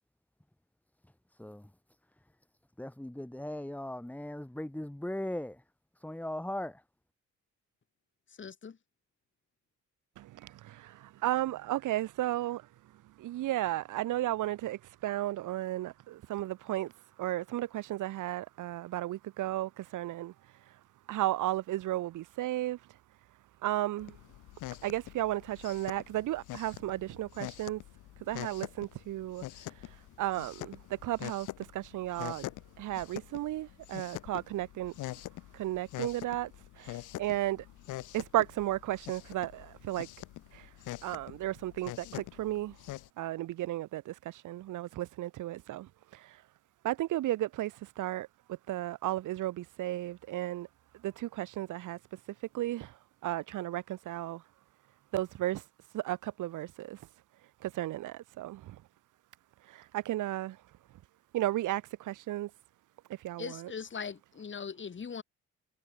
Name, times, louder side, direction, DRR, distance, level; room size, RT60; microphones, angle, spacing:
voice 1, 1.4-1.7 2.8-5.6 6.0-6.8, left 1 dB, 5° left, 4.7 m, -38 dB
voice 2, 8.3-8.8 63.4-65.2, left 6 dB, 40° left, 3.6 m, -40 dB
voice 3, 10.2-12.6 13.2-16.9 17.2-20.3 21.1-22.8 23.6-24.2 24.8-27.8 28.3-29.5 30.2-31.5 31.7-32.5 32.8-34.9 35.5-36.5 36.8-37.6 38.1-40.1 40.5-40.6 41.0-42.7 43.2-45.9 46.8-50.7 51.0-52.0 52.5-52.9 53.2-54.4 55.1-55.6 55.9-57.0 57.6-58.8 59.7-60.6 61.3-62.5 63.2-63.7, right 15 dB, 85° right, 3.6 m, -34 dB
sound 1, 24.0-43.1, left 16 dB, 90° left, 2.8 m, -45 dB
cardioid pair, 90°, 30 cm